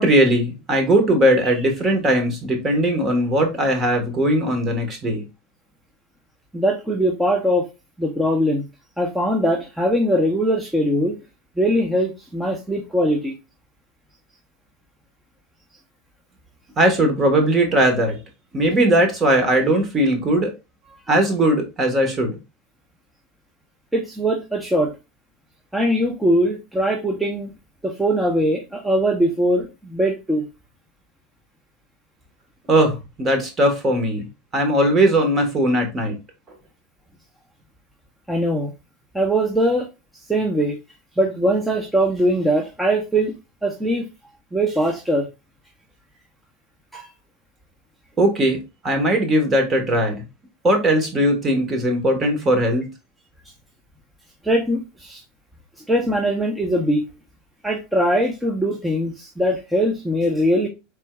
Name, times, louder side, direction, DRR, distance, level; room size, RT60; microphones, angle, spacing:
voice 1, 0.0-5.2 16.8-18.2 18.5-20.5 21.1-22.3 32.7-34.3 34.5-36.2 48.2-50.2 50.6-52.9, right 1 dB, 25° right, 4 dB, 1.2 m, -19 dB
voice 2, 6.5-7.6 8.0-8.7 9.0-11.2 11.6-13.3 23.9-24.9 25.7-27.5 27.8-30.4 38.3-38.7 39.1-39.9 40.3-40.8 41.2-43.3 43.6-44.1 44.5-45.3 46.9-47.1 54.4-55.2 55.9-57.0 57.6-60.7, equal, 5° right, 1 dB, 0.6 m, -21 dB
4.3 x 3.5 x 2.2 m, 0.27 s
supercardioid pair, 125°, 0 cm